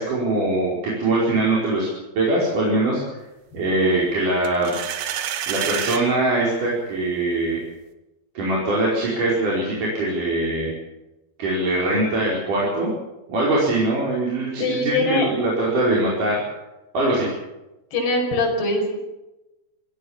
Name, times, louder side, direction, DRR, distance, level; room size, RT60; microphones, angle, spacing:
voice 1, 0.0-1.9 2.2-3.0 3.5-4.7 5.5-7.6 8.3-10.7 11.4-12.9 13.3-16.4 16.9-17.3, right 2 dB, 40° right, -5 dB, 6.2 m, -22 dB
sound 1, 4.4-6.0, right 10 dB, 70° right, 3.5 m, -28 dB
voice 2, 14.6-15.3 17.9-19.0, left 2 dB, 50° left, 1 dB, 7.2 m, -22 dB
26.0 x 15.5 x 7.3 m, 0.99 s
omnidirectional pair, 5.7 m